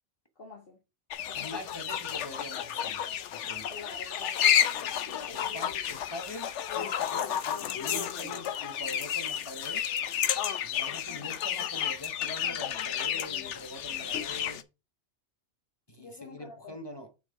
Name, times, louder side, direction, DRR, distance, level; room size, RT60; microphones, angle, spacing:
voice 1, 0.4-0.8 1.2-1.6 3.7-4.7 5.1-5.7 11.1-11.7 16.0-16.7, left 3 dB, 55° left, 1.6 m, -47 dB
sound 1, 1.1-14.6, left 9 dB, 80° left, 1.0 m, -31 dB
voice 2, 1.3-3.7 5.3-9.9 10.6-14.6 15.9-17.1, equal, 25° left, 1.0 m, -44 dB
8.5 x 4.1 x 4.8 m
omnidirectional pair, 1.2 m